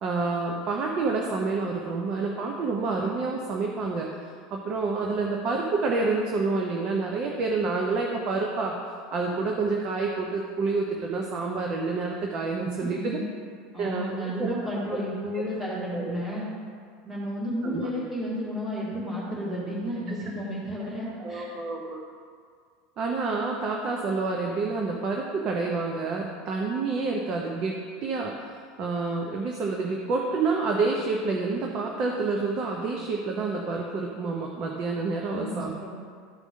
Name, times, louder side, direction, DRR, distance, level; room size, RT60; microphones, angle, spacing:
voice 1, 0.0-4.1 4.5-8.7 9.1-13.2 13.8-14.5 14.9-15.0 15.3-15.4 15.9-16.1 17.6-18.0 21.2-22.0 23.0-35.7, right 3 dB, 40° right, 0 dB, 0.9 m, -28 dB
voice 2, 12.8-13.2 13.7-16.5 17.0-21.4 35.2-35.9, equal, 15° right, -8 dB, 2.0 m, -32 dB
13.0 x 4.9 x 3.7 m, 2.1 s
supercardioid pair, 145°, 2 cm